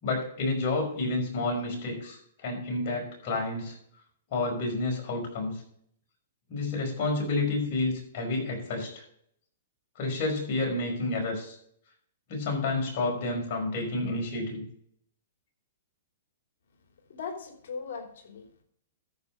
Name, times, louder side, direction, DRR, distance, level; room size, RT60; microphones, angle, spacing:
voice 1, 0.0-3.8 4.3-5.6 6.5-9.0 10.0-11.6 12.3-14.6, left 2 dB, 45° left, 0 dB, 5.4 m, -30 dB
voice 2, 17.1-18.6, left 5 dB, 65° left, 4 dB, 3.2 m, -39 dB
13.5 x 5.6 x 5.2 m, 0.65 s
hypercardioid pair, 145°, 0 cm